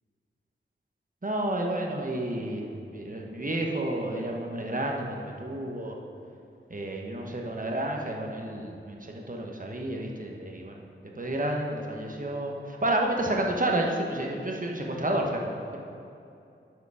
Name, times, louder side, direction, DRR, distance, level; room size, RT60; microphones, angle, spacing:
voice 1, 1.2-2.7 2.9-6.0 6.7-10.7 11.1-15.8, right 1 dB, 40° right, 0 dB, 1.1 m, -30 dB
11.0 x 5.0 x 4.8 m, 2.5 s
wide cardioid pair, 60°, 21 cm